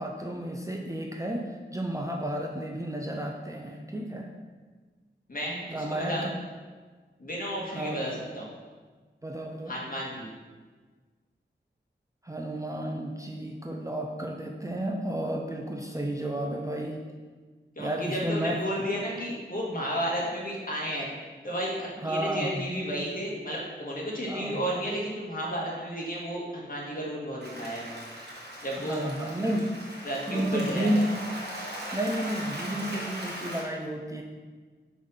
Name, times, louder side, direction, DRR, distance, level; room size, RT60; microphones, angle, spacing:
voice 1, 0.0-4.3 5.7-6.3 7.7-8.1 9.2-9.8 12.2-17.0 17.8-18.6 22.0-22.7 24.3-24.6 28.8-29.7 30.3-31.1 31.9-34.2, right 1 dB, 15° right, 1 dB, 0.6 m, -31 dB
voice 2, 5.3-6.3 7.2-8.5 9.7-10.3 17.7-21.1 21.4-27.9 28.6-29.0 30.0-31.0, equal, 50° left, -3 dB, 1.7 m, -32 dB
Applause, 27.4-33.6, right 1 dB, 60° right, 1.6 m, -39 dB
4.9 x 4.1 x 5.6 m, 1.4 s
wide cardioid pair, 75°, 19 cm